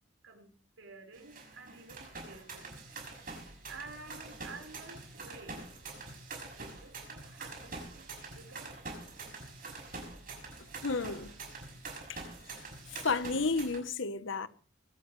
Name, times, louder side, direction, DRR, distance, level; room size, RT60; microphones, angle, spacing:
voice 1, 0.2-2.9 3.7-5.6 6.5-8.8, right 3 dB, 85° right, 4.9 m, -51 dB
sound 1, 1.1-13.8, right 3 dB, 45° right, 6.0 m, -45 dB
voice 2, 10.8-11.3 12.1-12.2 12.6-12.7 12.9-14.5, left 4 dB, 75° left, 1.1 m, -32 dB
24.5 x 13.0 x 3.3 m
head